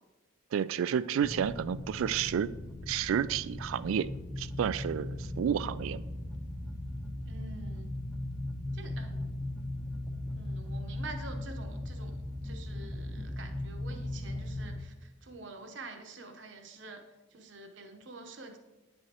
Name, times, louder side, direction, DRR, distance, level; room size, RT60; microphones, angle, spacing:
voice 1, 0.5-2.5 2.9-4.1 4.4-6.1, right 8 dB, 85° right, 0.3 m, -30 dB
sound 1, 1.2-14.8, left 1 dB, ahead, 0.6 m, -38 dB
voice 2, 7.3-7.9 8.7-9.4 10.3-12.2 12.4-17.0 17.3-18.6, right 3 dB, 65° right, 0.9 m, -47 dB
9.5 x 7.8 x 2.9 m
head